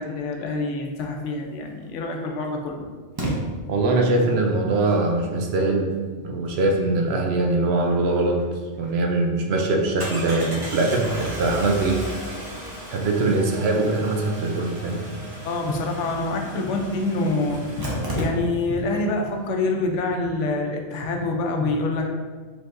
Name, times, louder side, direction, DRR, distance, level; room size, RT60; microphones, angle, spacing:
voice 1, 0.0-2.8 15.1-15.2 15.4-17.8 18.1-22.1, left 2 dB, 80° left, 2 dB, 0.9 m, -26 dB
Engine starting, 1.7-1.8 3.2-3.3 8.4-8.5 8.8-8.9 10.0-18.8 19.1-19.2 19.4-19.5, right 1 dB, 20° right, 0.8 m, -34 dB
voice 2, 3.7-5.9 6.2-8.4 8.8-12.0 12.9-15.0, right 2 dB, 65° right, 1 dB, 0.8 m, -22 dB
4.6 x 3.4 x 2.5 m, 1.5 s
omnidirectional pair, 1.2 m